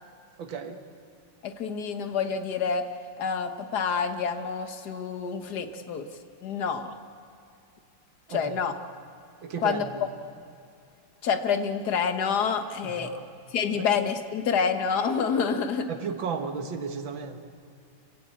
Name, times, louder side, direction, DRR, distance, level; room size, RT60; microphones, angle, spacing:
voice 1, 0.4-0.8 8.3-8.6 9.4-10.1 12.8-13.2 13.7-13.9 15.9-17.4, right 5 dB, 65° right, 6 dB, 2.2 m, -34 dB
voice 2, 1.4-2.9 3.2-6.1 6.4-6.9 8.3-8.7 9.6-9.9 11.2-13.1 13.5-15.9, left 6 dB, 55° left, 8 dB, 1.7 m, -27 dB
26.5 x 17.0 x 8.4 m, 2.6 s
omnidirectional pair, 2.3 m